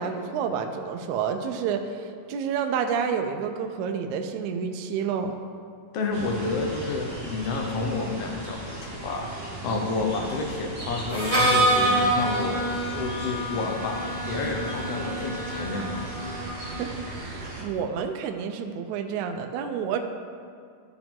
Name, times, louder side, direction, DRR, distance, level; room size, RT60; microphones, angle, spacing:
voice 1, 0.0-5.4 16.8-20.0, right 6 dB, 80° right, 5 dB, 1.7 m, -29 dB
voice 2, 5.9-9.3 9.6-12.7 12.9-16.1, left 3 dB, 80° left, 1 dB, 1.3 m, -30 dB
sound 1, 6.1-17.6, right 2 dB, 30° right, 1.0 m, -37 dB
Harmonica, 11.1-16.8, right 1 dB, 15° left, 1.4 m, -27 dB
14.0 x 4.9 x 3.7 m, 2.3 s
omnidirectional pair, 3.9 m